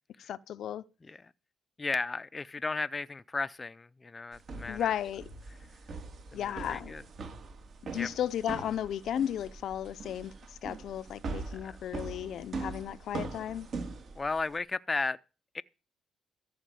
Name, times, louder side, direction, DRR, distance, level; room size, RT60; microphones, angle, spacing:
voice 1, 0.2-0.8 4.7-5.3 6.3-6.9 7.8-13.7, left 10 dB, 70° left, 0.6 m, -34 dB
voice 2, 1.8-4.9 6.3-7.0 7.9-8.1 11.6-11.8 14.2-15.2 15.5-15.6, left 3 dB, 25° left, 0.6 m, -35 dB
sound 1, 4.3-14.6, right 3 dB, 55° right, 3.3 m, -42 dB
14.0 x 5.9 x 9.2 m
cardioid pair, 90°, 0 cm